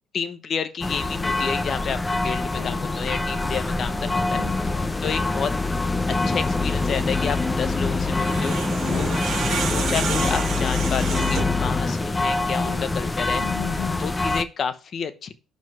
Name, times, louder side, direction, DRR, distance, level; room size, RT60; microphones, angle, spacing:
voice 1, 0.1-4.4 5.0-5.5 6.1-8.6 9.0-13.4 14.0-15.3, left 7 dB, 55° left, 0.9 m, -30 dB
sound 1, 0.8-14.4, left 3 dB, 20° left, 0.6 m, -25 dB
voice 2, 2.5-3.0 3.2-3.6 4.3-5.1 8.8-9.1 12.5-12.9 13.4-14.0, left 12 dB, 75° left, 0.3 m, -35 dB
sound 2, 8.0-11.7, right 6 dB, 70° right, 1.8 m, -30 dB
5.9 x 5.0 x 6.0 m
cardioid pair, 85°, 0 cm